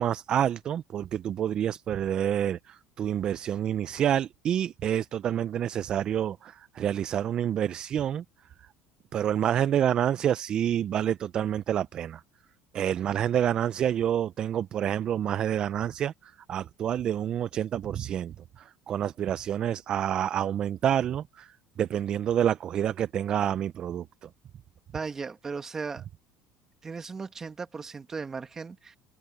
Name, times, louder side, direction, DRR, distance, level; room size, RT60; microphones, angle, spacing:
voice 1, 0.0-8.2 9.1-12.2 12.7-24.3, right 10 dB, 40° right, 0.4 m, -28 dB
voice 2, 24.9-26.1 26.8-29.0, right 5 dB, 20° right, 1.8 m, -36 dB
cardioid pair, 130°, 2 cm